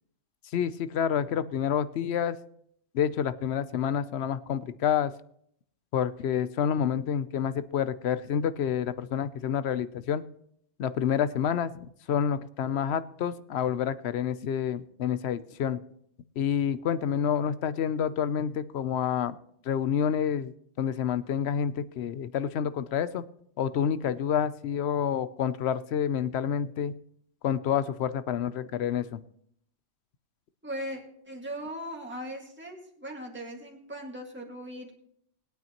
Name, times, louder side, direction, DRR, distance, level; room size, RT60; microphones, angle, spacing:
voice 1, 0.5-2.4 2.9-5.1 5.9-10.2 10.8-15.8 16.4-19.4 19.6-20.5 20.8-23.2 23.6-26.9 27.4-29.2, left 8 dB, 70° left, 14 dB, 0.9 m, -28 dB
voice 2, 30.6-35.0, equal, 10° right, 0 dB, 1.9 m, -39 dB
20.5 x 9.2 x 2.9 m, 0.68 s
omnidirectional pair, 1.2 m